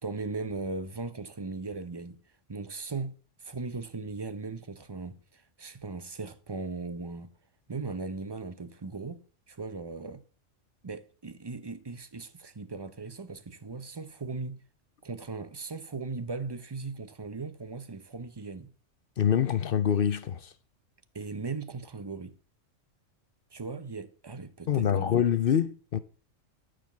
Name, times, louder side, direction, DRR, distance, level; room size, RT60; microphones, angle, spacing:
voice 1, 0.0-2.2 2.5-3.1 3.4-7.3 7.7-10.2 10.8-14.6 15.0-18.7 21.1-22.4 23.5-25.0, right 3 dB, 25° right, 0.5 m, -38 dB
voice 2, 19.2-20.5 24.7-26.0, left 9 dB, 55° left, 0.7 m, -25 dB
13.0 x 5.1 x 7.1 m
omnidirectional pair, 1.3 m